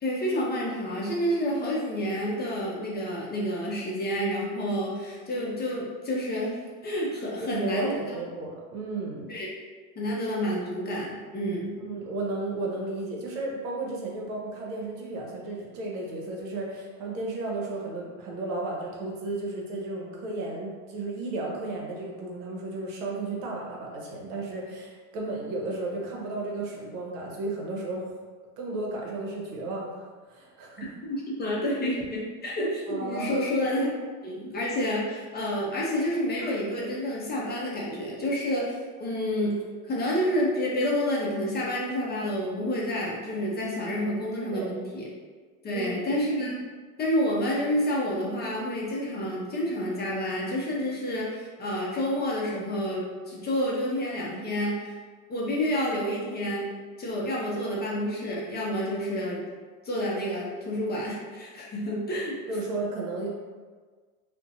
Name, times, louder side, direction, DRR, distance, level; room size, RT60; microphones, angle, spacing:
voice 1, 0.0-6.6 6.8-8.0 9.3-9.5 10.0-11.7 30.8-33.9 34.2-39.6 39.8-45.1 45.6-46.6 47.0-54.9 55.3-56.7 57.0-59.4 59.8-62.3, equal, 20° left, -5 dB, 0.5 m, -29 dB
voice 2, 7.5-9.3 11.8-28.1 28.6-30.9 32.9-33.5 44.0-44.1 44.5-44.7 45.7-46.1 62.5-63.3, right 2 dB, 75° right, -2 dB, 0.9 m, -34 dB
2.6 x 2.1 x 2.6 m, 1.5 s
supercardioid pair, 105°, 45 cm